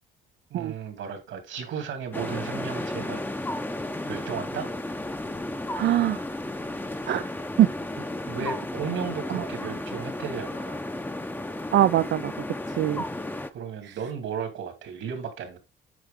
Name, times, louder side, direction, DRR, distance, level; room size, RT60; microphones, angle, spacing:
voice 1, 0.5-3.2 4.1-4.7 8.2-10.8 12.9-13.1 13.5-15.6, right 7 dB, 80° right, 2.7 m, -34 dB
sound 1, 2.1-13.5, left 1 dB, 10° left, 0.7 m, -33 dB
voice 2, 5.8-6.2 7.1-7.3 7.6-7.7 9.3-9.5 11.7-12.3 12.7-13.0 13.8-14.0, right 12 dB, 65° right, 0.5 m, -22 dB
9.2 x 4.7 x 3.6 m
cardioid pair, 90°, 20 cm